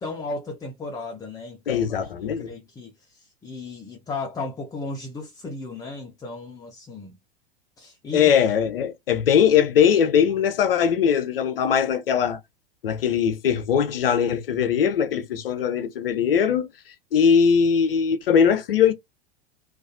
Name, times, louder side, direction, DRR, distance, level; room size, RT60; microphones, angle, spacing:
voice 1, 0.0-7.2 7.8-8.3, left 3 dB, 10° left, 0.4 m, -35 dB
voice 2, 1.7-2.5 8.1-12.4 12.8-16.7 17.1-18.9, left 7 dB, 70° left, 0.6 m, -20 dB
2.4 x 2.2 x 2.4 m
figure-of-eight pair, 85°, 29 cm